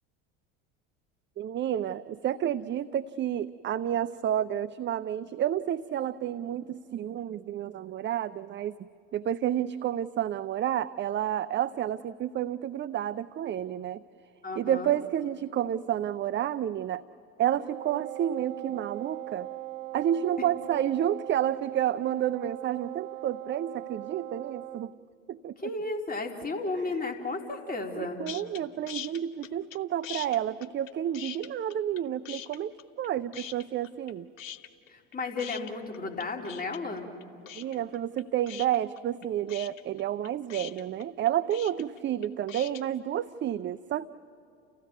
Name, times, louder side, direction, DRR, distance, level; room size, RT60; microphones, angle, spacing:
voice 1, 1.4-8.8 9.1-14.0 14.6-17.0 17.4-19.5 19.9-24.9 25.3-25.6 28.0-34.3 37.5-44.1, right 11 dB, 30° right, 14 dB, 0.5 m, -30 dB
voice 2, 14.4-14.9 25.6-28.2 34.9-37.1, left 3 dB, 25° left, 2 dB, 3.6 m, -34 dB
Wind instrument woodwind instrument, 17.6-24.9, right 16 dB, 80° right, 0.8 m, -40 dB
sound 1, 28.3-28.6 28.9-29.8 30.0-32.0 32.3-33.1 33.3-34.1 34.4-42.8, left 10 dB, 85° left, 1.2 m, -42 dB
30.0 x 16.0 x 9.3 m, 2.8 s
hypercardioid pair, 75°, 38 cm